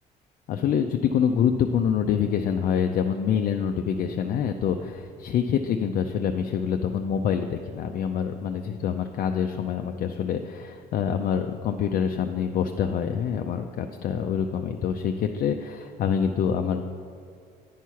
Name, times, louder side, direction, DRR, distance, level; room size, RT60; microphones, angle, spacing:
voice 1, 0.5-16.8, left 7 dB, 55° left, 5 dB, 0.4 m, -26 dB
9.1 x 4.7 x 5.7 m, 2.2 s
cardioid pair, 110°, 17 cm